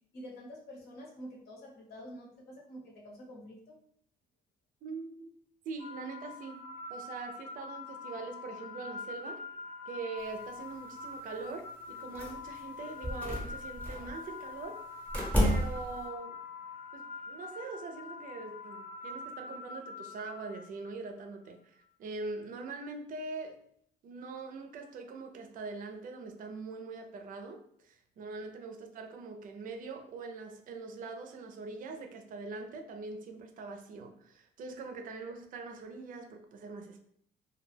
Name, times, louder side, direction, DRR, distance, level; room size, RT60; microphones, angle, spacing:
voice 1, 0.1-3.7, equal, 70° left, -2 dB, 1.0 m, -48 dB
voice 2, 4.8-5.3 5.7-6.6 6.9-9.4 9.9-14.8 15.4-16.3 16.9-21.7 22.0-23.6 24.0-37.0, right 4 dB, 55° right, 5 dB, 0.4 m, -43 dB
sound 1, 5.8-20.9, left 3 dB, 55° left, 0.5 m, -44 dB
sound 2, 12.1-12.6 13.0-14.1 15.1-16.0, equal, 10° left, 0.8 m, -31 dB
2.2 x 2.2 x 3.2 m, 0.67 s
cardioid pair, 110°, 17 cm